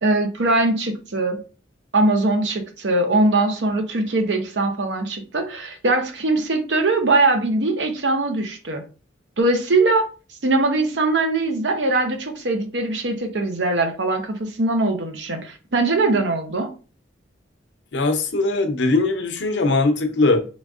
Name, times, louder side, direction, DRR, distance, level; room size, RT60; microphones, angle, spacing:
voice 1, 0.0-1.4 1.9-8.8 9.4-10.1 10.4-16.7, right 2 dB, 75° right, 0.7 m, -21 dB
voice 2, 17.9-20.4, left 3 dB, 80° left, 0.7 m, -20 dB
3.9 x 3.5 x 2.5 m
head